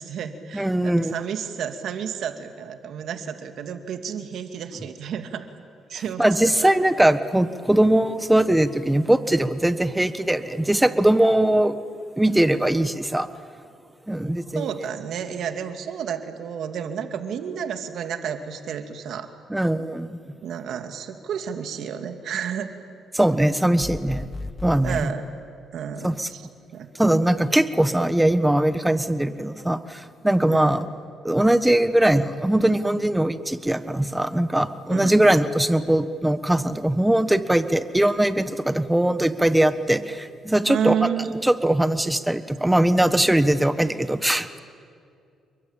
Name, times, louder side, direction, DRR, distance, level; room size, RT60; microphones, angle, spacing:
voice 1, 0.0-5.5 5.9-6.2 6.6-6.7 14.5-19.3 20.4-22.7 24.8-25.2 25.7-26.4 26.7-26.9 30.5-30.8 34.9-35.1 40.6-41.3, right 8 dB, 70° right, 7 dB, 2.3 m, -31 dB
voice 2, 0.5-1.1 5.9-11.7 12.2-13.3 14.1-14.7 19.5-20.2 23.1-24.3 24.6-25.1 26.0-26.3 27.0-30.9 31.2-40.9 41.4-44.6, right 1 dB, 10° right, 12 dB, 1.3 m, -21 dB
sound 1, 23.8-25.1, left 2 dB, 20° left, 0.9 m, -34 dB
29.0 x 22.5 x 9.0 m, 2.4 s
cardioid pair, 90°, 0 cm